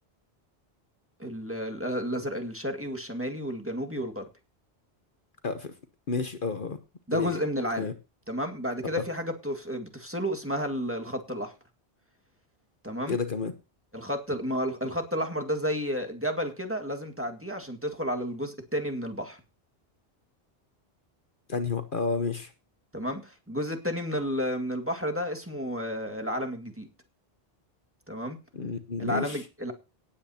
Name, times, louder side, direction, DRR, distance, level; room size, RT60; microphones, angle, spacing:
voice 1, 1.2-4.3 7.1-7.9 8.3-11.5 12.8-13.2 13.9-19.4 22.9-26.9 28.1-28.4 29.0-29.7, equal, 10° right, 1.9 m, -31 dB
voice 2, 5.4-5.7 6.1-6.8 7.1-7.4 7.8-7.9 13.1-13.5 21.5-22.5 28.5-29.4, left 4 dB, 55° left, 1.1 m, -30 dB
18.0 x 8.7 x 2.8 m
omnidirectional pair, 1.1 m